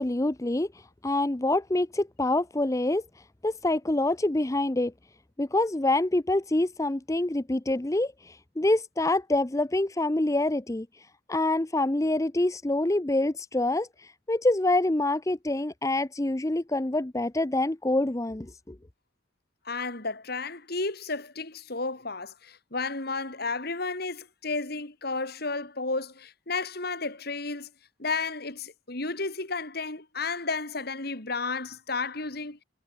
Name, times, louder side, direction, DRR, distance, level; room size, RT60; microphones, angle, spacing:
voice 1, 0.0-3.0 3.4-4.9 5.4-18.8, left 2 dB, 15° left, 0.6 m, -26 dB
voice 2, 19.6-27.7 28.0-32.6, left 3 dB, 55° left, 3.2 m, -32 dB
head